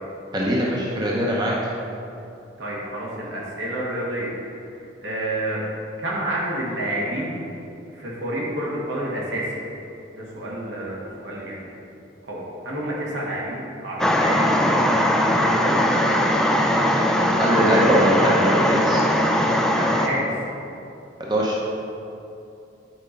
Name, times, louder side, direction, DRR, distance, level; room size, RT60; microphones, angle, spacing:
voice 1, 0.3-1.5 17.4-19.0 21.2-21.6, equal, 20° right, -4 dB, 0.9 m, -21 dB
voice 2, 2.6-4.3 5.0-5.6 6.0-7.4 7.9-9.6 10.1-11.7 12.2-16.4 19.7-20.3, right 1 dB, 80° right, -5 dB, 1.9 m, -29 dB
sound 1, 14.0-20.1, left 1 dB, 5° left, 0.4 m, -20 dB
9.0 x 4.4 x 5.2 m, 2.7 s
head